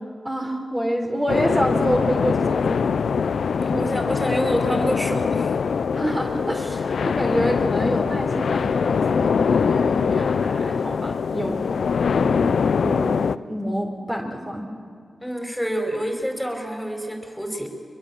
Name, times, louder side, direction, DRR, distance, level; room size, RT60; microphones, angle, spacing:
voice 1, 0.2-2.9 5.9-11.6 12.1-13.2 13.5-14.7, equal, 25° right, 0 dB, 3.9 m, -27 dB
sound 1, 1.3-13.4, left 6 dB, 80° left, 0.6 m, -22 dB
voice 2, 3.6-5.6 15.2-17.7, equal, 5° left, 3 dB, 5.1 m, -27 dB
23.5 x 22.5 x 7.4 m, 2.1 s
cardioid pair, 40°, 0 cm